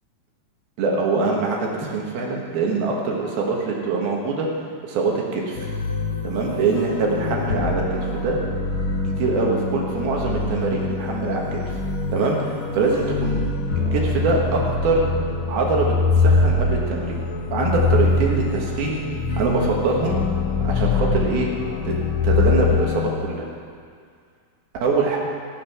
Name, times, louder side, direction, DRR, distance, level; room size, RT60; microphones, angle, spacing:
voice 1, 0.8-4.5 4.8-5.7 6.2-7.8 8.1-8.4 9.2-11.6 12.1-13.4 13.9-15.1 15.5-17.2 17.5-19.0 19.4-20.2 20.6-21.5 21.8-22.0 22.2-23.5 24.8-25.2, right 3 dB, 70° right, -1 dB, 3.3 m, -23 dB
sound 1, 5.6-23.1, left 3 dB, 65° left, 1.4 m, -24 dB
16.0 x 8.7 x 6.1 m, 2.1 s
omnidirectional pair, 4.7 m